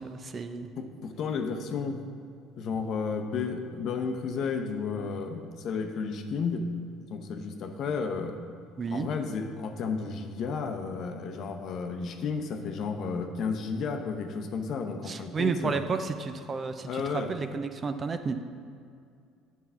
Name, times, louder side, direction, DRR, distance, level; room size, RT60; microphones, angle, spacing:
voice 1, 0.0-0.7 8.8-9.1 15.1-18.4, right 4 dB, 35° right, 8 dB, 0.5 m, -32 dB
voice 2, 0.8-2.0 2.6-6.7 7.1-8.4 8.9-15.8 16.8-17.3, left 5 dB, 55° left, 6 dB, 0.7 m, -32 dB
8.6 x 4.6 x 5.7 m, 2.3 s
supercardioid pair, 85°, 0 cm